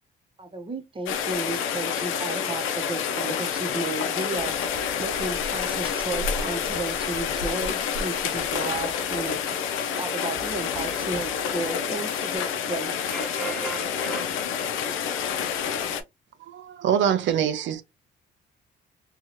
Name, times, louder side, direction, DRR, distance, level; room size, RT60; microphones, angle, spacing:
voice 1, 0.4-4.6 5.0-9.4 10.0-13.0, right 2 dB, 25° right, 0.8 m, -33 dB
Rain, 1.1-16.0, left 7 dB, 85° left, 0.5 m, -28 dB
sound 1, 4.4-12.4, left 2 dB, 30° left, 1.0 m, -47 dB
voice 2, 10.5-11.4 11.8-12.0 13.1-14.3, right 4 dB, 5° left, 0.3 m, -38 dB
voice 3, 16.5-17.8, right 9 dB, 70° right, 0.4 m, -24 dB
2.7 x 2.4 x 2.8 m
cardioid pair, 90°, 20 cm